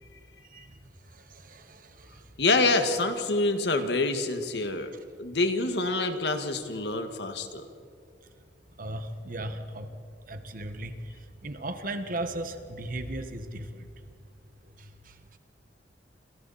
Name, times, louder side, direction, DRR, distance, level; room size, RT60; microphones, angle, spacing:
voice 1, 1.4-2.1 4.6-4.8 8.8-9.9 10.3-10.9 11.4-13.8, right 1 dB, 50° right, 8 dB, 1.5 m, -36 dB
voice 2, 2.4-4.9 5.2-7.7, left 3 dB, 70° left, 7 dB, 1.9 m, -26 dB
29.5 x 26.5 x 4.3 m, 2.4 s
head